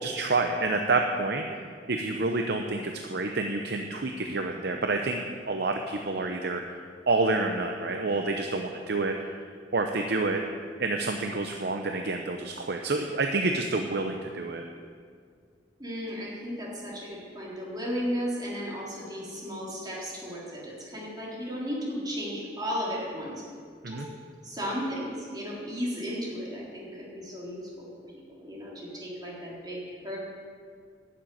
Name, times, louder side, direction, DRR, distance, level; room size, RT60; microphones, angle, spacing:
voice 1, 0.0-1.6 1.9-9.4 9.7-10.4 10.8-14.6 23.8-24.1, right 3 dB, 65° right, 4 dB, 0.7 m, -28 dB
voice 2, 15.8-23.4 23.9-24.0 24.4-27.9 28.4-30.2, equal, 25° right, -5 dB, 3.6 m, -35 dB
11.5 x 7.5 x 9.2 m, 2.1 s
head